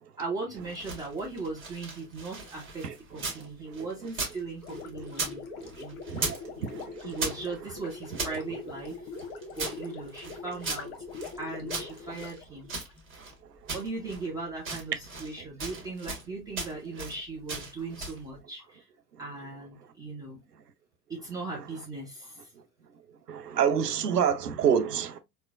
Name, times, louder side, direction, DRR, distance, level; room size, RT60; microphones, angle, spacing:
voice 1, 0.2-6.3 7.0-9.1 9.5-10.9 11.4-12.7 13.7-18.9 19.2-20.4 21.1-22.5, right 3 dB, 10° right, 0.3 m, -38 dB
sound 1, 0.6-3.4 3.7-5.4 5.6-6.5 6.7-8.4 8.9-11.4 11.7-13.3 13.7-14.3 14.6-15.3 15.6-16.3 16.5-17.2 17.5-18.2, right 3 dB, 25° right, 1.3 m, -37 dB
Gurgling, 4.6-13.0, left 4 dB, 40° left, 0.8 m, -42 dB
voice 2, 6.1-7.0 23.3-25.2, right 8 dB, 85° right, 0.6 m, -27 dB
4.3 x 2.1 x 2.3 m
figure-of-eight pair, 85°, 46 cm